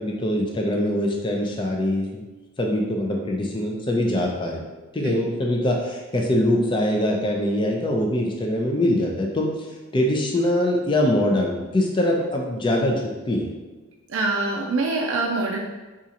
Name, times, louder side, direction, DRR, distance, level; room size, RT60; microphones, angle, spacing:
voice 1, 0.0-2.2 2.6-4.6 4.9-9.5 9.9-13.0 13.3-13.5, left 1 dB, 25° left, 0 dB, 0.4 m, -23 dB
voice 2, 14.1-15.6, right 3 dB, 65° right, -1 dB, 0.4 m, -24 dB
4.2 x 2.4 x 2.8 m, 1.2 s
head